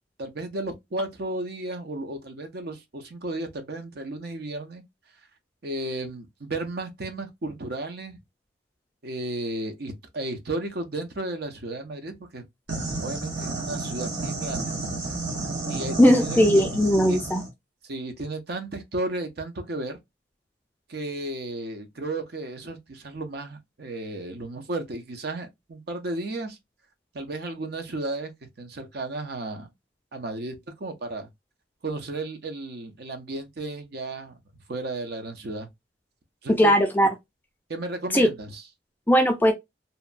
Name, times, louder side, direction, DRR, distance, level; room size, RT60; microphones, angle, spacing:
voice 1, 0.2-4.8 5.6-8.2 9.0-12.4 13.0-14.8 15.7-16.6 17.1-17.2 17.8-20.0 20.9-26.6 27.1-29.7 30.1-31.3 31.8-34.4 34.7-35.7 36.4-36.7 37.7-38.6, right 2 dB, 55° right, 0.6 m, -34 dB
sound 1, 12.7-17.5, right 3 dB, 70° right, 1.1 m, -31 dB
voice 2, 16.0-17.4 36.5-37.1 38.1-38.3 39.1-39.5, equal, 10° left, 0.4 m, -18 dB
2.8 x 2.2 x 2.4 m
head